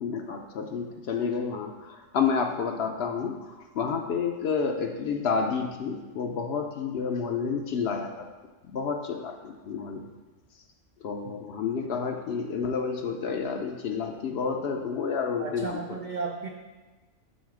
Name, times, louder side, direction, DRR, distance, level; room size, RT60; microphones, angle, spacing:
voice 1, 0.0-3.3 3.8-8.3 8.7-10.1 11.0-15.8, left 5 dB, 65° left, 4 dB, 0.7 m, -30 dB
voice 2, 15.4-16.5, right 4 dB, 90° right, 1 dB, 0.4 m, -34 dB
6.3 x 3.9 x 4.7 m, 1.2 s
omnidirectional pair, 1.4 m